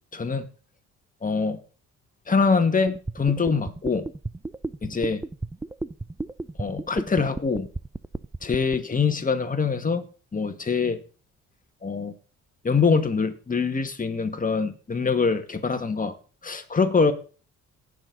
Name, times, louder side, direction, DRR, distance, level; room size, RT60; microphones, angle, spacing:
voice 1, 0.1-0.5 1.2-1.6 2.3-4.1 4.8-5.2 6.6-7.7 8.4-10.0 10.3-11.0 11.8-12.1 12.6-16.1 16.4-17.1, left 5 dB, 25° left, 7 dB, 2.0 m, -24 dB
sound 1, 2.9-8.8, right 3 dB, 10° right, 0.5 m, -32 dB
18.5 x 6.7 x 4.1 m, 0.37 s
cardioid pair, 90°, 30 cm